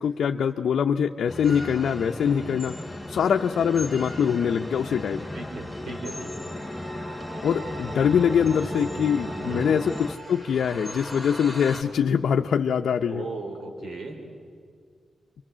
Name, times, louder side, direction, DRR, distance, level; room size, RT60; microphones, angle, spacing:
voice 1, 0.0-2.8 3.1-5.3 7.4-13.3, left 7 dB, 85° left, 3 dB, 0.7 m, -23 dB
sound 1, 1.3-10.2, left 1 dB, 5° left, 1.0 m, -36 dB
sound 2, 1.4-11.8, equal, 10° right, 3.3 m, -42 dB
voice 2, 5.3-6.3 9.4-9.7 13.1-14.2, right 3 dB, 75° right, 3 dB, 4.1 m, -36 dB
27.5 x 24.0 x 7.4 m, 2.1 s
cardioid pair, 95°, 0 cm